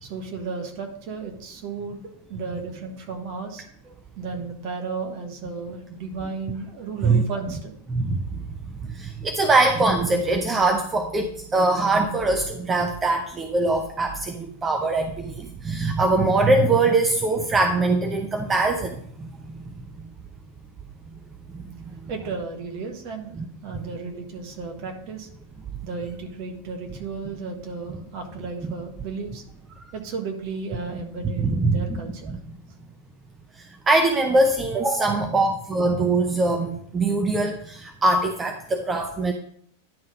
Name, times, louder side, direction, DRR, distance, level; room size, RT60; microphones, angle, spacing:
voice 1, 0.0-7.8 22.1-25.3 25.8-29.4 29.9-32.4, right 4 dB, 45° right, 5 dB, 1.4 m, -34 dB
voice 2, 7.9-8.4 8.7-19.6 21.5-21.6 22.0-22.1 23.4-23.5 23.7-23.9 31.4-32.0 32.3-32.6 33.6-39.3, right 2 dB, 20° right, 5 dB, 0.7 m, -22 dB
10.5 x 3.8 x 5.1 m, 0.64 s
figure-of-eight pair, 90°, 0 cm